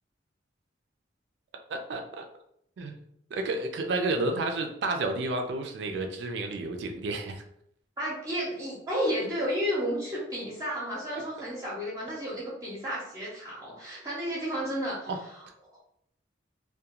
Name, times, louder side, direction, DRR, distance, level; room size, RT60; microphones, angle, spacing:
voice 1, 1.7-2.3 2.8-3.1 3.3-7.4 15.1-15.2, right 2 dB, 70° right, 4 dB, 0.3 m, -31 dB
voice 2, 8.0-15.1, equal, 20° right, -7 dB, 0.6 m, -32 dB
2.3 x 2.2 x 2.8 m, 0.72 s
head